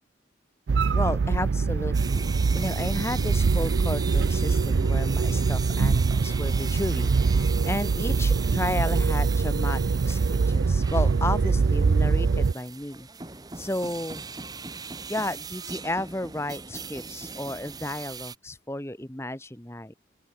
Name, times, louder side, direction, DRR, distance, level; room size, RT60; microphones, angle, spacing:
sound 1, 0.7-12.5, right 4 dB, 85° right, 0.5 m, -23 dB
voice 1, 0.9-9.8 10.1-13.1 13.5-14.2 15.1-19.9, left 1 dB, 15° left, 1.2 m, -33 dB
Human voice / Subway metro underground, 1.3-9.3, left 1 dB, 80° left, 7.1 m, -56 dB
sound 2, 1.9-18.4, right 5 dB, 20° right, 1.3 m, -40 dB
head